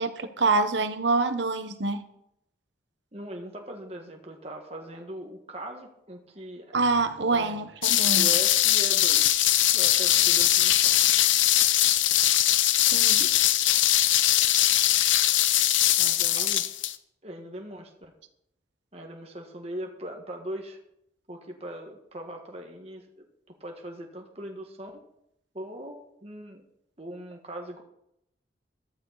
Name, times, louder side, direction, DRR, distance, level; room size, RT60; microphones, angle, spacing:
voice 1, 0.0-2.0 6.7-8.3 12.9-13.4 16.4-16.5, right 3 dB, 75° right, 9 dB, 1.3 m, -26 dB
voice 2, 3.1-6.7 7.3-7.5 8.2-9.5 9.7-11.0 14.3-14.4 16.0-16.7 17.2-18.1 18.9-20.8 21.3-23.3 23.6-25.0 25.5-26.6 27.0-27.8, right 1 dB, 35° right, 2 dB, 1.7 m, -40 dB
sound 1, 7.8-17.0, left 13 dB, 90° left, 0.8 m, -21 dB
14.5 x 13.0 x 4.2 m, 0.77 s
head